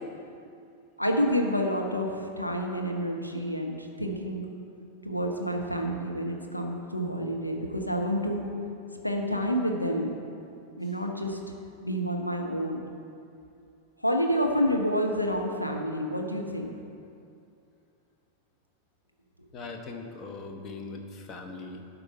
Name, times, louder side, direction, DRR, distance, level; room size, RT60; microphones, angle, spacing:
voice 1, 1.0-4.4 5.0-8.5 9.0-10.1 10.8-11.4 11.8-12.8 14.0-16.7, equal, 90° left, 2 dB, 0.8 m, -28 dB
voice 2, 19.5-21.8, left 3 dB, 30° left, 4 dB, 1.0 m, -40 dB
11.5 x 4.2 x 5.5 m, 2.6 s
figure-of-eight pair, 90°, 0 cm